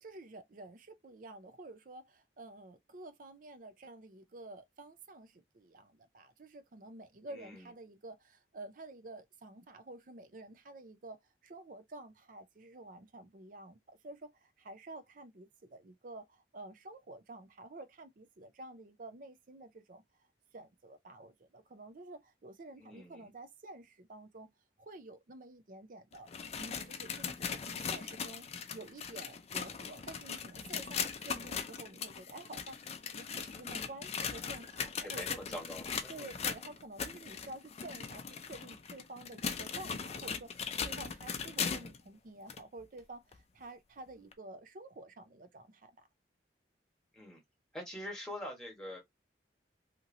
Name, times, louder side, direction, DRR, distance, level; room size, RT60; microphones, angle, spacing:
voice 1, 0.0-11.2 11.4-20.0 20.5-24.5 24.8-26.3 26.6-28.4 28.7-32.8 33.1-35.4 36.1-40.5 40.8-46.1, right 2 dB, 50° right, 0.5 m, -50 dB
voice 2, 7.3-7.7 22.8-23.3 35.0-36.3 47.1-47.4 47.7-49.0, left 1 dB, 5° left, 1.3 m, -44 dB
sound 1, 26.1-42.0 42.5-42.6 43.3-43.4 44.3-44.4, left 6 dB, 35° left, 0.4 m, -39 dB
2.9 x 2.7 x 2.6 m
head